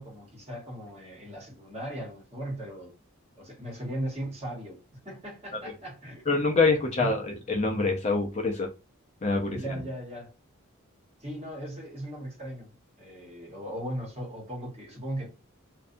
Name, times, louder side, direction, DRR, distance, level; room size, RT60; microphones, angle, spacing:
voice 1, 0.0-2.9 3.3-4.8 5.0-6.2 7.0-7.1 9.5-10.3 11.2-12.7 13.0-15.3, right 1 dB, 30° right, 1.0 m, -37 dB
voice 2, 6.3-8.7 9.2-9.8, left 3 dB, 30° left, 0.4 m, -26 dB
2.6 x 2.2 x 2.5 m
head